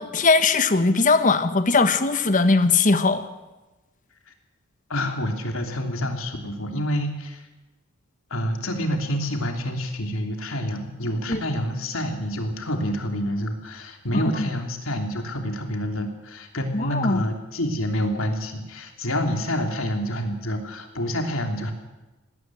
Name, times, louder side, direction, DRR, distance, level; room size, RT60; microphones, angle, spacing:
voice 1, 0.0-3.3 11.3-11.4 14.4-14.5 16.7-17.2, left 3 dB, 40° left, 10 dB, 1.3 m, -20 dB
voice 2, 4.9-7.5 8.3-21.7, equal, 80° left, 4 dB, 3.1 m, -28 dB
20.0 x 17.0 x 7.8 m, 1.1 s
head